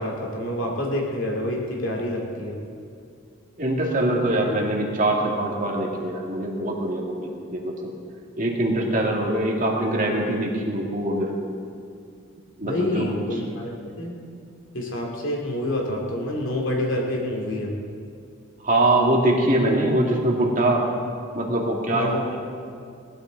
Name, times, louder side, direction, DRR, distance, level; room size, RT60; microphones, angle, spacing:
voice 1, 0.0-2.6 12.6-13.7 14.0-14.1 14.7-17.7 21.9-22.4, left 1 dB, 65° left, -1 dB, 2.5 m, -27 dB
voice 2, 3.6-7.7 8.4-11.3 12.6-13.1 18.6-20.8 21.3-22.1, right 1 dB, 40° right, -1 dB, 2.2 m, -23 dB
19.5 x 13.0 x 4.0 m, 2.4 s
head